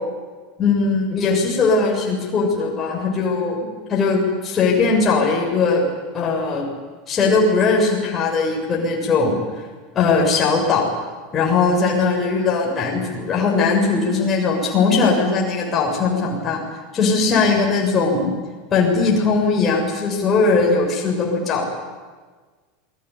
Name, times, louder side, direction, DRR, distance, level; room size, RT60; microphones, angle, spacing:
voice 1, 0.6-5.8 6.1-6.7 7.1-9.4 10.0-10.9 11.3-16.6 16.9-18.3 18.7-21.7, left 4 dB, 25° left, -1 dB, 6.9 m, -19 dB
28.5 x 21.5 x 8.5 m, 1.4 s
figure-of-eight pair, 80°, 0 cm